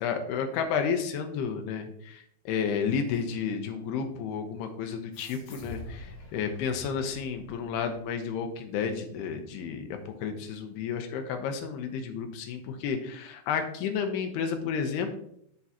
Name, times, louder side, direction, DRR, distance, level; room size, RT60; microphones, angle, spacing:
voice 1, 0.0-2.2 2.5-15.2, left 6 dB, 80° left, 5 dB, 2.3 m, -31 dB
sound 1, 5.1-8.2, left 1 dB, 50° left, 4.1 m, -46 dB
12.0 x 4.6 x 2.8 m, 0.70 s
omnidirectional pair, 5.5 m